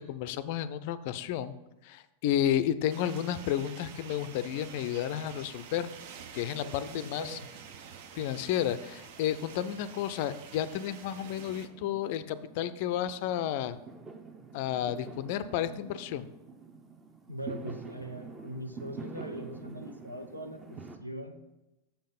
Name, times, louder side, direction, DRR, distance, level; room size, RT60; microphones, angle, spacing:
voice 1, 0.0-1.5 1.8-5.9 6.3-7.4 8.1-13.8 14.5-16.3, left 10 dB, 50° left, 14 dB, 0.4 m, -32 dB
sound 1, 2.9-11.7, right 7 dB, 50° right, 0.7 m, -48 dB
voice 2, 6.6-7.5 17.3-21.5, right 1 dB, 85° right, 6 dB, 0.7 m, -41 dB
Fireworks, 7.5-21.0, right 4 dB, 20° right, 0.8 m, -48 dB
7.0 x 5.5 x 5.2 m, 0.97 s
figure-of-eight pair, 90°, 0 cm